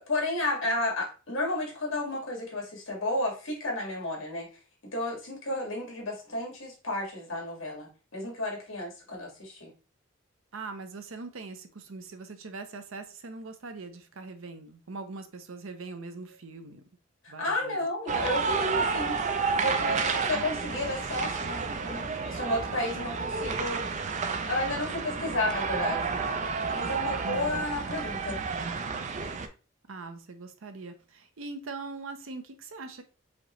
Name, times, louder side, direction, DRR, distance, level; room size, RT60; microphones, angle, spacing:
voice 1, 0.1-4.5 4.9-9.7 17.2-19.2 19.6-23.8 24.5-26.1 26.7-28.4, left 1 dB, 65° left, -1 dB, 2.0 m, -32 dB
voice 2, 10.5-16.8 17.3-18.4 20.3-20.6 27.2-27.7 29.9-33.0, right 3 dB, 70° right, 8 dB, 0.7 m, -42 dB
sound 1, 18.1-29.5, right 5 dB, 35° right, 0.4 m, -31 dB
5.0 x 3.0 x 3.1 m, 0.34 s
head